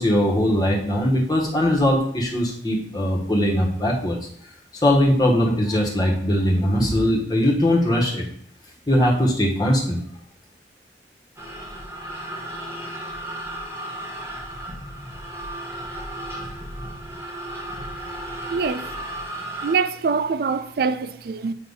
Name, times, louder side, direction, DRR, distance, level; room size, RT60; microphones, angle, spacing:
voice 1, 0.0-4.2 4.8-8.2 8.9-10.0, left 1 dB, 25° left, 1.3 m, -20 dB
sound 1, 11.4-19.7, right 1 dB, 15° right, 0.9 m, -34 dB
voice 2, 18.5-18.9 19.6-21.5, right 5 dB, 60° right, 0.4 m, -24 dB
8.0 x 2.7 x 5.4 m
head